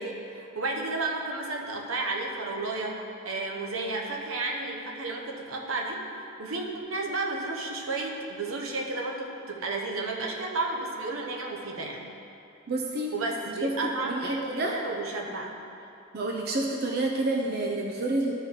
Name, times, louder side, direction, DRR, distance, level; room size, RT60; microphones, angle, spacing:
voice 1, 0.0-3.0 3.2-6.0 6.4-12.0 13.1-15.5, right 3 dB, 85° right, 0 dB, 1.0 m, -32 dB
voice 2, 12.7-13.1 13.6-13.8 14.0-14.8 16.1-18.3, right 2 dB, 50° right, 0 dB, 0.6 m, -29 dB
13.0 x 4.5 x 3.7 m, 2.7 s
head